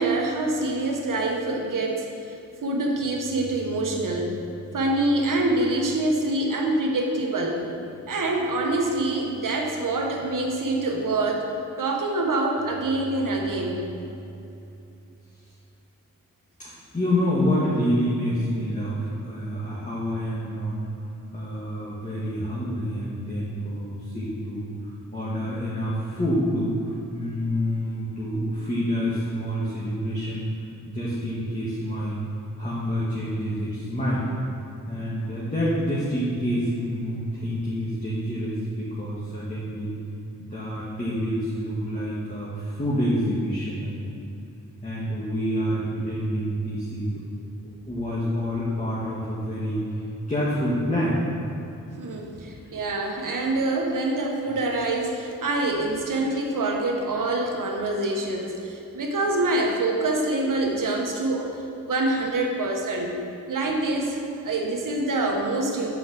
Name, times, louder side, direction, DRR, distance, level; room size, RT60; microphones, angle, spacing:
voice 1, 0.0-4.3 4.7-7.6 8.1-11.4 11.8-13.8 52.0-63.1 63.5-65.9, right 2 dB, 70° right, 1 dB, 1.2 m, -25 dB
voice 2, 16.6-20.8 21.3-30.5 30.9-32.2 32.6-34.3 34.9-39.9 40.4-44.1 44.8-47.2 47.9-51.2 52.3-52.4, equal, 25° left, -7 dB, 1.6 m, -27 dB
6.1 x 4.8 x 6.1 m, 2.8 s
cardioid pair, 50°, 33 cm